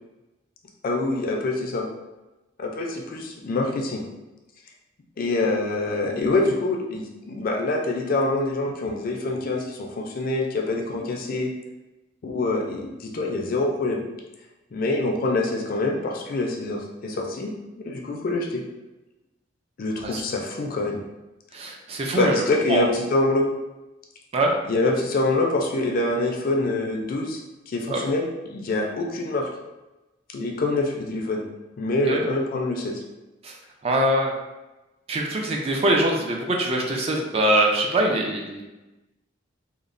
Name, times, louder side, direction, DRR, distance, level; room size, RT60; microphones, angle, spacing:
voice 1, 0.8-1.9 2.6-4.0 5.2-11.5 12.2-14.0 14.7-17.5 17.8-18.6 19.8-21.0 22.1-23.5 24.7-27.4 27.7-29.5 30.3-31.4 31.8-33.0, left 2 dB, 50° left, 0 dB, 0.4 m, -25 dB
voice 2, 21.5-22.4 22.7-22.9 24.3-24.5 27.9-28.0 32.1-32.2 33.4-33.5 33.8-34.3 35.1-38.6, right 1 dB, 30° right, 0 dB, 0.3 m, -23 dB
2.9 x 2.0 x 2.5 m, 1.0 s
head